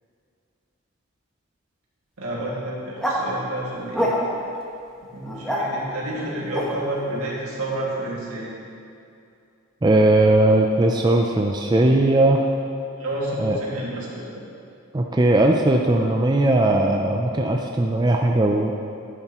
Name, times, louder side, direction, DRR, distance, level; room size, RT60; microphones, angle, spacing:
voice 1, 2.2-4.1 5.1-8.5 13.0-14.4, right 1 dB, 75° right, -5 dB, 2.2 m, -30 dB
sound 1, 3.0-3.2 3.9-4.5 5.2-5.6 6.5-6.7, equal, 5° left, 1.2 m, -25 dB
voice 2, 9.8-12.4 13.4-13.6 14.9-18.7, right 2 dB, 20° right, 1 dB, 0.4 m, -18 dB
11.0 x 9.8 x 3.0 m, 2.6 s
head